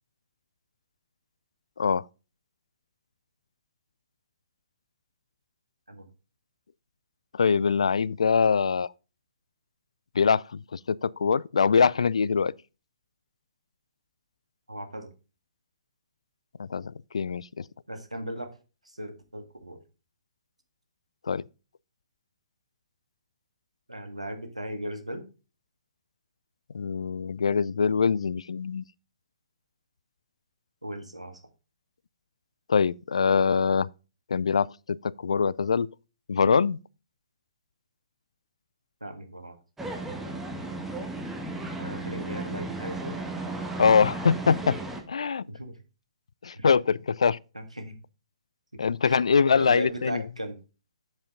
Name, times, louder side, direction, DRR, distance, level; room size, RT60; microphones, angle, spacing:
voice 1, 7.4-8.9 10.2-12.5 16.7-17.6 21.3-21.4 26.7-28.8 32.7-33.9 34.3-35.9 36.3-36.8 43.8-44.8 45.1-45.4 46.4-47.4 48.8-50.2, left 5 dB, 65° left, 0.3 m, -23 dB
voice 2, 14.7-15.1 17.9-18.5 18.9-19.8 23.9-25.2 30.8-31.4 39.0-39.6 41.8-43.2 45.5-45.8 46.5-46.7 47.5-48.0 48.7-49.2 49.5-50.6, right 1 dB, 90° right, 1.9 m, -37 dB
sound 1, 39.8-45.0, right 2 dB, 5° right, 1.4 m, -35 dB
7.6 x 7.1 x 3.7 m
figure-of-eight pair, 125°, 3 cm